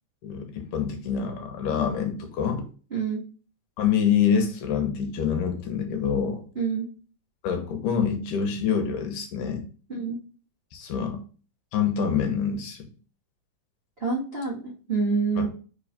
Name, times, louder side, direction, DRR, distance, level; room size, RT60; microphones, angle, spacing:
voice 1, 0.2-2.6 3.8-6.4 7.4-9.7 10.7-11.2 11.7-12.9 15.4-15.5, left 7 dB, 75° left, 5 dB, 2.4 m, -26 dB
voice 2, 2.9-3.2 6.5-6.9 9.9-10.2 14.0-15.5, right 4 dB, 90° right, -6 dB, 0.5 m, -27 dB
5.2 x 3.8 x 5.1 m, 0.38 s
omnidirectional pair, 3.8 m